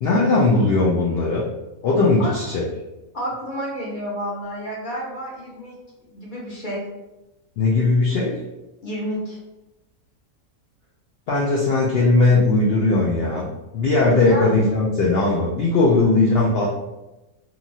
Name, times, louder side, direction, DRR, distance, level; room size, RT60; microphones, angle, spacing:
voice 1, 0.0-1.5 1.8-2.6 7.6-8.4 11.3-13.5 13.7-16.8, left 3 dB, 75° left, -5 dB, 0.5 m, -18 dB
voice 2, 3.1-5.8 6.1-6.8 8.8-9.4 14.3-14.5, equal, 40° left, -5 dB, 0.8 m, -30 dB
2.9 x 2.4 x 2.6 m, 1.0 s
omnidirectional pair, 1.5 m